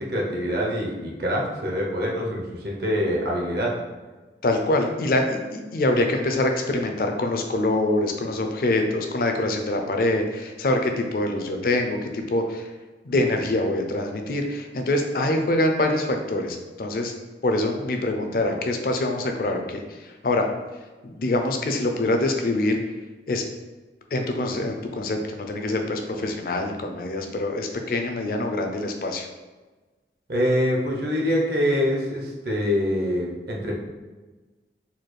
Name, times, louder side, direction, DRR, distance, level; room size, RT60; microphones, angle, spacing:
voice 1, 0.0-3.7 30.3-33.8, equal, 60° right, -2 dB, 0.7 m, -25 dB
voice 2, 4.4-12.7 13.0-17.1 17.4-20.5 21.0-22.8 23.3-23.4 24.1-29.3, left 2 dB, 50° left, 4 dB, 0.4 m, -25 dB
4.1 x 2.3 x 3.1 m, 1.2 s
head